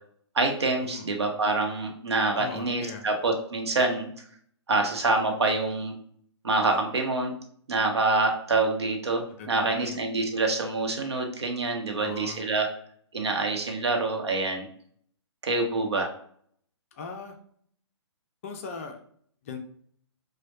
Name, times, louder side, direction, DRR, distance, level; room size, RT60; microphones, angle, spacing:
voice 1, 0.3-4.1 4.7-5.9 6.4-7.3 7.7-12.7 13.1-14.7 15.4-16.1, right 3 dB, 65° right, 3 dB, 0.9 m, -26 dB
voice 2, 2.3-3.1 9.4-10.0 12.0-12.5 16.9-17.4 18.4-19.0 19.4-19.6, left 5 dB, 30° left, 5 dB, 0.4 m, -39 dB
6.0 x 2.2 x 2.7 m, 0.62 s
figure-of-eight pair, 125°, 15 cm